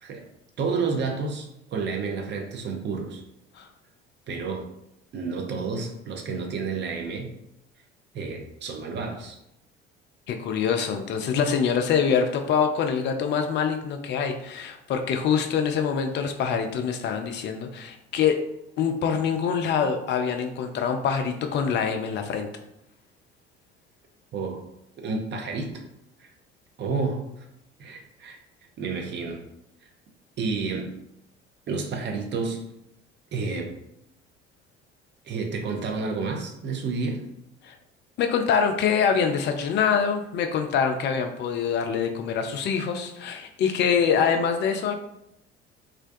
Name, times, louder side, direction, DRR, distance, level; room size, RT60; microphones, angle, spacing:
voice 1, 0.6-3.2 4.3-4.7 5.1-7.3 8.1-9.4 24.3-24.6 25.0-25.7 26.2-26.3 26.8-27.4 27.8-28.4 28.8-29.4 30.4-30.9 31.7-32.6 33.3-33.7 35.2-37.2, right 4 dB, 35° right, 2 dB, 0.5 m, -30 dB
voice 2, 10.3-18.4 18.8-22.5 37.6-37.8 38.2-44.9, left 7 dB, 35° left, 5 dB, 0.4 m, -25 dB
2.5 x 2.2 x 2.5 m, 0.81 s
figure-of-eight pair, 55°, 31 cm